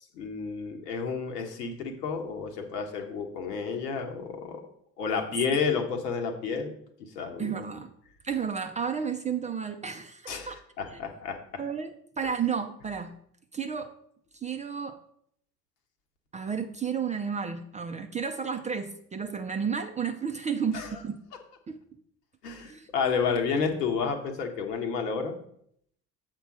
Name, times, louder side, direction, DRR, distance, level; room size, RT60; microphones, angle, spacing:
voice 1, 0.1-4.6 5.0-6.7 7.1-7.5 10.3-11.4 20.7-21.0 22.4-25.4, left 5 dB, 75° left, 3 dB, 1.3 m, -30 dB
voice 2, 7.4-7.9 8.2-10.6 10.9-11.0 11.6-13.1 13.5-13.9 14.3-15.0 16.3-21.2 21.7-21.8 22.6-22.9 23.2-23.4, right 6 dB, 15° right, 7 dB, 0.4 m, -32 dB
7.2 x 4.5 x 6.1 m, 0.68 s
figure-of-eight pair, 65°, 47 cm